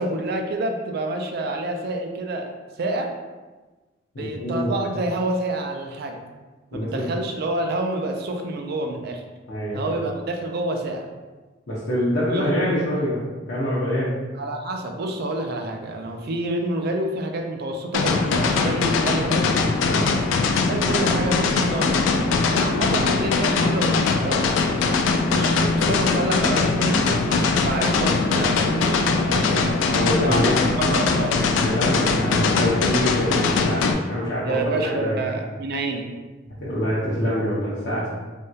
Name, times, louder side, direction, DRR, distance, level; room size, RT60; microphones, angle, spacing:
voice 1, 0.0-2.5 2.8-3.1 4.2-6.2 6.7-9.2 9.7-11.1 12.3-12.5 14.3-19.5 20.7-22.0 22.5-24.4 25.3-29.7 30.2-31.4 34.4-36.1, right 2 dB, 55° right, 3 dB, 0.4 m, -28 dB
voice 2, 4.1-4.7 6.7-7.0 9.5-9.9 11.7-14.2 19.8-20.1 29.9-30.5 31.6-35.2 36.5-38.1, equal, 60° left, -9 dB, 0.7 m, -25 dB
sound 1, 17.9-33.9, left 4 dB, 75° left, 0.3 m, -21 dB
3.4 x 2.2 x 2.7 m, 1.3 s
head